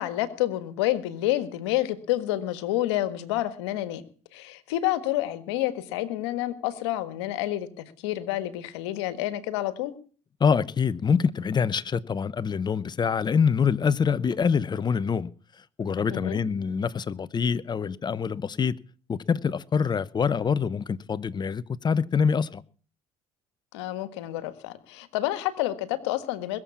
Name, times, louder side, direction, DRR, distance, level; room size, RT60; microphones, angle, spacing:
voice 1, 0.0-4.0 4.3-9.9 16.1-16.4 23.7-26.6, left 14 dB, 85° left, 1.5 m, -29 dB
voice 2, 10.4-15.3 15.8-18.8 19.1-22.6, left 6 dB, 30° left, 0.8 m, -25 dB
21.0 x 7.5 x 7.2 m
hypercardioid pair, 75°, 14 cm